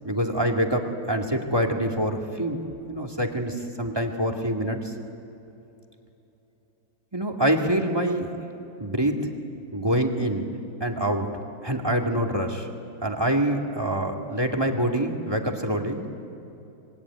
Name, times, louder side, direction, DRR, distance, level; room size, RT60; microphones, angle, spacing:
voice 1, 0.0-2.6 2.9-4.9 7.1-8.3 8.8-9.3 9.7-10.5 10.8-11.3 11.6-12.7 13.0-16.1, right 1 dB, 15° right, 3 dB, 2.1 m, -25 dB
26.5 x 23.0 x 9.7 m, 3.0 s
omnidirectional pair, 2.0 m